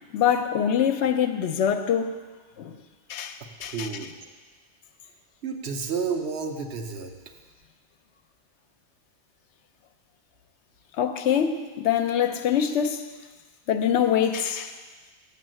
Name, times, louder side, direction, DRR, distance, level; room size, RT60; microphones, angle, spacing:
voice 1, 0.1-2.1 2.6-2.8 3.1-3.9 11.0-13.1 13.7-14.7, left 8 dB, 75° left, 0.9 m, -24 dB
voice 2, 3.4-4.1 5.4-7.1, right 5 dB, 65° right, 1.0 m, -31 dB
7.1 x 5.7 x 7.5 m
omnidirectional pair, 1.2 m